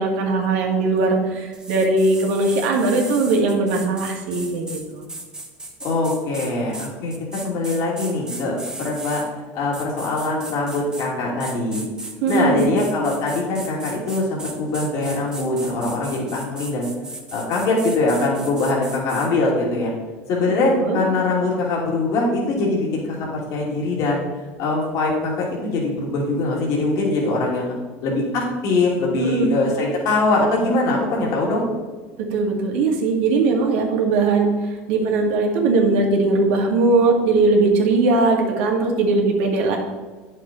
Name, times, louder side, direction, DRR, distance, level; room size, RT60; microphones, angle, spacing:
voice 1, 0.0-5.1 12.2-12.7 20.5-21.0 29.2-29.5 32.3-39.8, right 3 dB, 80° right, 1 dB, 1.9 m, -20 dB
sound 1, 1.5-9.3 9.7-11.1 11.4-19.3, right 2 dB, 10° right, 1.3 m, -36 dB
voice 2, 5.8-9.2 9.5-11.9 12.3-16.9 17.3-19.9 20.3-24.2 24.6-27.8 28.0-31.6, left 2 dB, 60° left, -3 dB, 2.8 m, -22 dB
9.1 x 6.6 x 4.3 m, 1.3 s
supercardioid pair, 105°, 7 cm